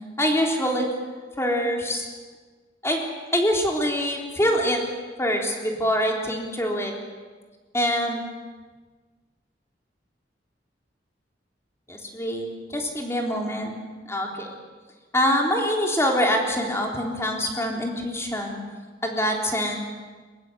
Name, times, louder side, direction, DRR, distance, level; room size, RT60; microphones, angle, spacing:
voice 1, 0.2-0.9 1.4-2.0 2.8-3.0 3.3-4.8 5.2-6.9 7.7-8.2 11.9-13.7 14.1-14.6 15.1-18.6 19.0-19.8, equal, 15° left, 1 dB, 3.7 m, -24 dB
22.0 x 21.5 x 8.0 m, 1.4 s
head